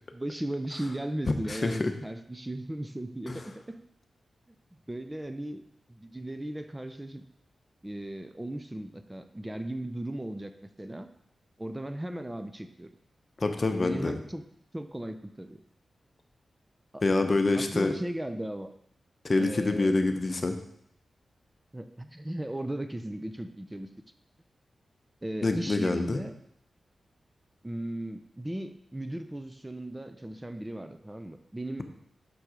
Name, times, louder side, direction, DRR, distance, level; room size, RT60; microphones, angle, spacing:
voice 1, 0.1-3.8 4.9-5.6 5.9-7.2 7.8-10.5 10.8-11.1 11.6-12.9 13.8-14.4 14.7-15.6 16.9-17.0 17.5-18.7 19.4-20.0 21.7-23.9 25.2-26.3 27.6-31.8, right 1 dB, 15° right, 9 dB, 0.5 m, -36 dB
voice 2, 1.5-1.9 3.3-3.4 13.4-14.2 17.0-17.9 19.2-20.6 25.4-26.2, left 3 dB, 45° left, 6 dB, 0.8 m, -26 dB
6.8 x 4.5 x 5.0 m, 0.73 s
cardioid pair, 50°, 0 cm